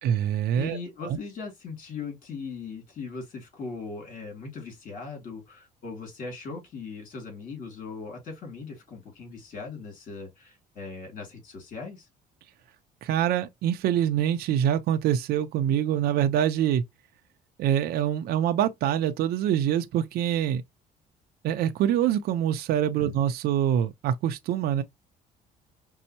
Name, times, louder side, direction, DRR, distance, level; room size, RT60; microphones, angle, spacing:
voice 1, 0.0-1.2 13.0-16.8 17.6-20.6 21.4-24.8, right 10 dB, 65° right, 0.5 m, -25 dB
voice 2, 0.6-12.1 23.0-23.1, left 4 dB, 50° left, 2.4 m, -39 dB
5.3 x 2.0 x 2.8 m
cardioid pair, 110°, 17 cm